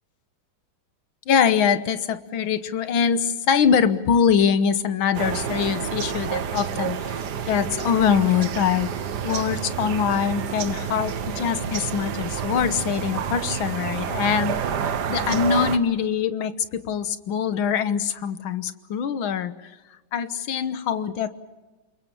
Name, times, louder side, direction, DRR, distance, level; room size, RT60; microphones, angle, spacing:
voice 1, 1.3-7.2 7.5-9.0 9.2-14.5 15.1-19.6 20.1-21.3, left 7 dB, 70° left, 12 dB, 1.8 m, -23 dB
sound 1, 5.1-15.8, right 7 dB, 55° right, 1.6 m, -29 dB
28.0 x 22.5 x 7.2 m, 1.2 s
omnidirectional pair, 2.3 m